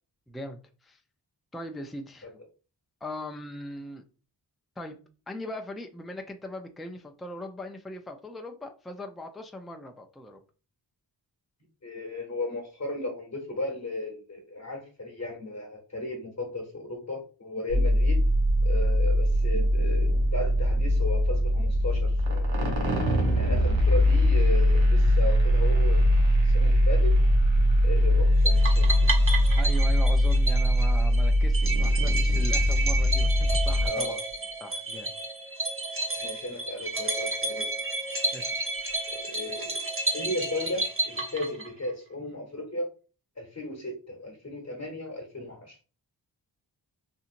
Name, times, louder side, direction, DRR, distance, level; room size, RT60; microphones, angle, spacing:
voice 1, 0.3-1.0 1.5-2.3 3.0-4.0 4.8-5.0 5.3-10.4 29.6-34.2 34.6-35.1 38.3-38.5, left 1 dB, ahead, 4 dB, 0.4 m, -39 dB
voice 2, 11.8-18.2 18.6-22.6 23.3-26.1 26.4-27.2 27.8-29.1 33.8-34.2 36.2-37.7 39.1-39.8 40.1-42.9 43.4-45.8, left 1 dB, 35° left, 0 dB, 0.9 m, -35 dB
sound 1, 17.7-33.9, equal, 80° right, 0.8 m, -22 dB
sound 2, 28.4-41.9, right 2 dB, 30° right, 0.8 m, -32 dB
2.8 x 2.7 x 2.5 m, 0.35 s
cardioid pair, 50°, 44 cm